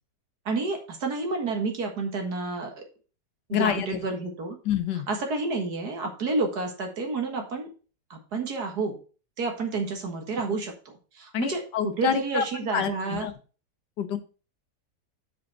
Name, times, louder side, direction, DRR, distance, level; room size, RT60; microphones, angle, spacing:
voice 1, 0.5-2.8 3.5-4.6 5.1-7.7 8.1-9.0 9.4-10.7 11.1-13.3, right 3 dB, 70° right, 3 dB, 2.2 m, -29 dB
voice 2, 3.5-3.9 4.6-5.1 11.3-12.4 12.7-13.3 14.0-14.2, left 9 dB, 85° left, 9 dB, 1.5 m, -27 dB
6.2 x 5.3 x 5.3 m, 0.35 s
omnidirectional pair, 1.8 m